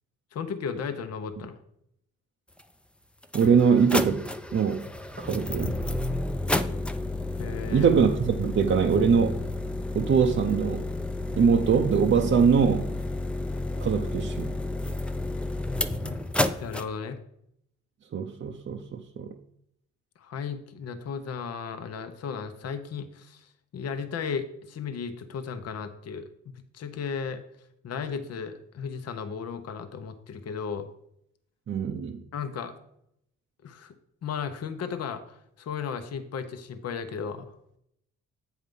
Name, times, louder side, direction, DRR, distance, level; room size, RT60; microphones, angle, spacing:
voice 1, 0.3-1.6 7.4-7.9 16.0-16.2 16.6-17.2 20.2-26.3 26.7-27.4 27.8-30.9 32.3-32.7 33.6-33.9 34.2-37.5, left 6 dB, 55° left, 9 dB, 0.9 m, -35 dB
sound 1, 2.6-2.7 3.2-16.8, left 2 dB, 5° left, 0.5 m, -31 dB
voice 2, 3.3-4.9 5.2-5.8 7.7-9.4 9.9-10.9 11.4-12.9 13.8-14.5 18.1-19.3 31.7-32.2, right 6 dB, 45° right, 3 dB, 0.7 m, -23 dB
7.9 x 4.7 x 5.3 m, 0.75 s
cardioid pair, 90°, 30 cm